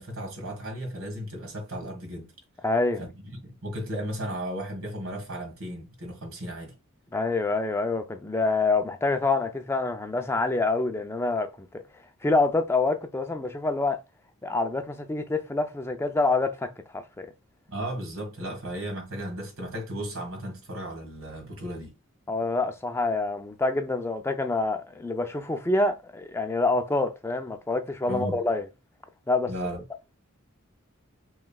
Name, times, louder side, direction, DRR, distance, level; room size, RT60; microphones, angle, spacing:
voice 1, 0.0-2.3 3.0-3.1 3.4-6.7 17.7-21.9 28.1-28.4 29.5-29.8, equal, 70° right, 1.5 m, -35 dB
voice 2, 2.6-3.0 7.1-11.7 12.2-14.0 14.4-17.3 22.3-28.6 29.3-29.5, left 3 dB, 10° left, 0.4 m, -26 dB
5.9 x 3.1 x 2.3 m
head